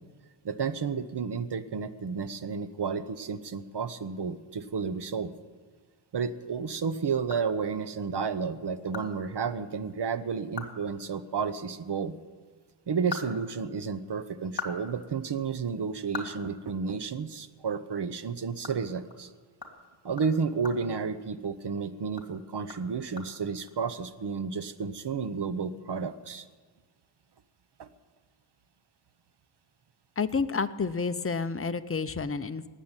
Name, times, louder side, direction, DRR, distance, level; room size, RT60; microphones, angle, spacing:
voice 1, 0.4-5.3 6.1-12.2 12.9-19.3 20.0-26.5 27.8-27.9, right 5 dB, 55° right, 13 dB, 0.9 m, -32 dB
sound 1, 7.3-8.0 8.4-8.5 8.9-9.1 9.4-9.5 9.9-10.0 10.4-10.8 11.1-11.2 12.7-14.0 14.4-17.3 17.6-17.7 18.1-21.7 22.1-23.7, left 4 dB, 45° left, 2.6 m, -43 dB
voice 2, 30.2-32.7, left 5 dB, 25° left, 11 dB, 0.6 m, -30 dB
18.5 x 7.6 x 9.0 m, 1.5 s
wide cardioid pair, 100°, 50 cm